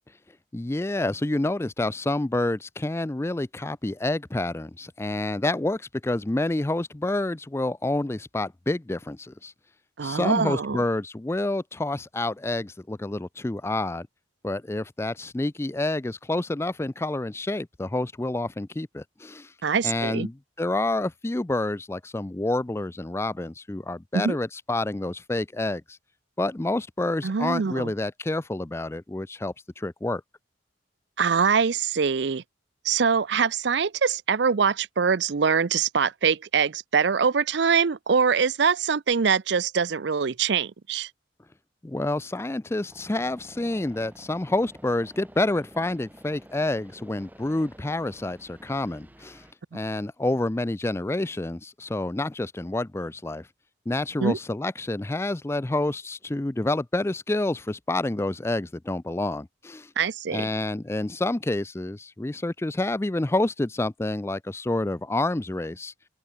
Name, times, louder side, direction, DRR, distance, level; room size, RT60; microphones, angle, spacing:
voice 1, 0.5-9.5 10.0-14.1 14.4-19.5 19.8-26.0 26.4-30.2 41.8-49.4 49.7-53.5 53.9-59.9 60.3-65.9, left 2 dB, 15° left, 0.4 m, -28 dB
voice 2, 10.0-10.8 19.6-20.3 24.1-24.4 27.2-27.9 31.2-32.4 32.8-41.1 54.2-54.4 60.0-60.5, right 6 dB, 60° right, 0.5 m, -23 dB
sound 1, 42.9-49.5, equal, 10° right, 5.8 m, -50 dB
open air
head